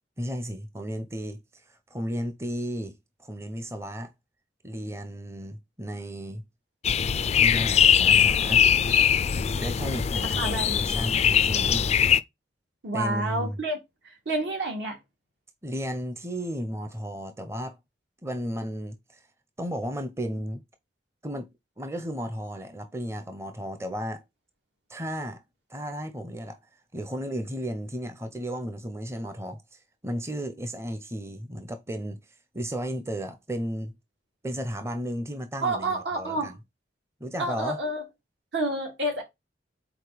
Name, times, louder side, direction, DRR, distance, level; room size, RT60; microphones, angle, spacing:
voice 1, 0.2-1.4 1.7-4.1 4.6-6.4 7.4-8.6 9.6-12.0 12.9-13.6 15.6-17.8 18.2-19.2 19.6-20.6 21.2-21.5 21.8-24.2 24.9-25.4 25.7-26.6 26.9-32.2 32.5-33.9 34.4-36.6 37.2-37.8, equal, 15° right, 0.7 m, -34 dB
sound 1, 6.8-12.2, left 8 dB, 35° left, 0.3 m, -21 dB
voice 2, 10.4-10.8 12.8-13.8 14.0-15.0 35.6-36.6 37.4-38.0 38.5-39.2, right 2 dB, 75° right, 2.6 m, -29 dB
4.9 x 4.1 x 5.0 m
head